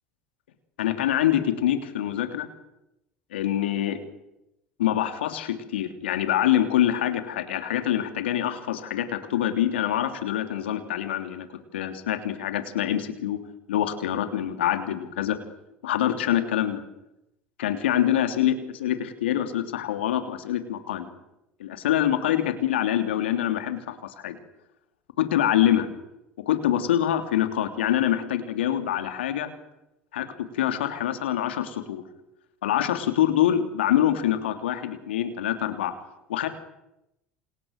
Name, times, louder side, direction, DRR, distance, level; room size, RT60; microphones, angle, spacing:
voice 1, 0.8-2.5 3.3-4.0 4.8-11.5 11.7-13.4 13.7-15.4 15.8-16.8 17.6-21.1 21.6-24.4 25.2-25.9 26.4-29.5 30.1-32.0 32.6-35.9 36.3-36.5, left 11 dB, 80° left, 8 dB, 3.1 m, -25 dB
28.0 x 28.0 x 6.7 m, 0.89 s
hypercardioid pair, 70°, 6 cm